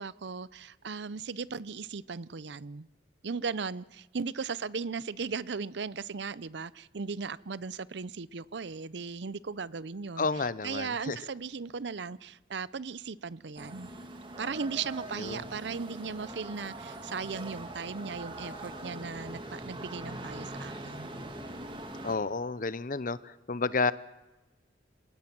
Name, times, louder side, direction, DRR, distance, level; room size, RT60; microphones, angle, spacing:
voice 1, 0.0-2.9 3.2-13.9 14.4-21.1, right 5 dB, 70° right, 19 dB, 0.6 m, -37 dB
voice 2, 10.2-11.2 15.2-15.5 22.0-23.9, left 4 dB, 45° left, 17 dB, 0.7 m, -31 dB
sound 1, 13.6-22.2, right 1 dB, 25° right, 2.1 m, -42 dB
27.5 x 17.5 x 6.1 m, 1.1 s
head